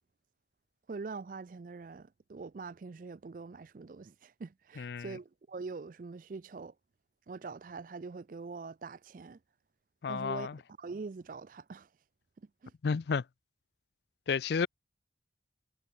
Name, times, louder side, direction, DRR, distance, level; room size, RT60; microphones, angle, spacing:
voice 1, 0.9-6.7 7.3-9.4 10.1-10.5 10.8-11.9 12.6-12.7, right 4 dB, 45° right, 0.4 m, -43 dB
voice 2, 4.8-5.2 10.0-10.6 12.8-13.2 14.3-14.7, left 5 dB, 65° left, 0.4 m, -31 dB
head